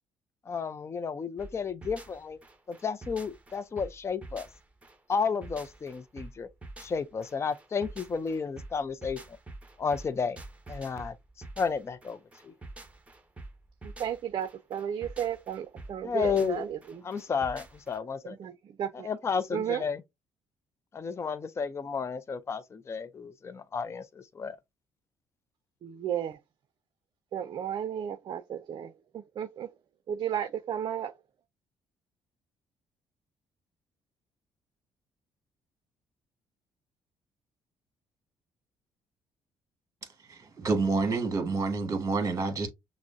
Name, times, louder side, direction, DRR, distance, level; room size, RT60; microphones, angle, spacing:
voice 1, 0.5-2.4 2.7-4.5 5.1-6.5 6.8-9.4 9.8-10.4 10.7-11.2 11.6-12.2 12.4-12.5 16.0-16.7 17.0-18.4 18.9-20.0 20.9-24.6, left 5 dB, 30° left, 0.4 m, -32 dB
sound 1, 1.4-18.0, right 2 dB, 15° right, 1.0 m, -47 dB
voice 2, 13.8-17.1 18.2-19.1 19.5-19.8 25.8-26.4 27.3-29.7 30.1-31.1, right 9 dB, 55° right, 0.5 m, -34 dB
voice 3, 40.3-42.7, right 3 dB, 35° right, 1.3 m, -28 dB
6.0 x 2.0 x 2.6 m
cardioid pair, 90°, 9 cm